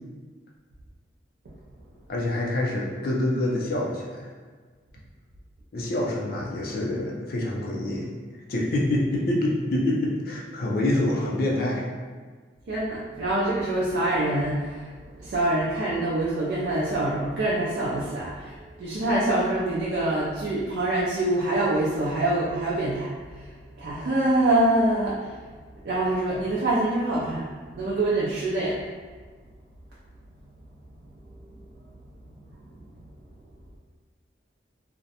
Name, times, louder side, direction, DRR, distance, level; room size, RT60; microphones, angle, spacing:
voice 1, 2.1-4.3 5.7-8.1 8.5-11.9, left 1 dB, 55° left, -3 dB, 0.4 m, -26 dB
voice 2, 12.7-23.5 23.8-25.5 25.8-27.5 27.7-28.8 31.6-31.7, right 1 dB, 70° right, -7 dB, 0.4 m, -25 dB
2.4 x 2.0 x 2.7 m, 1.5 s
head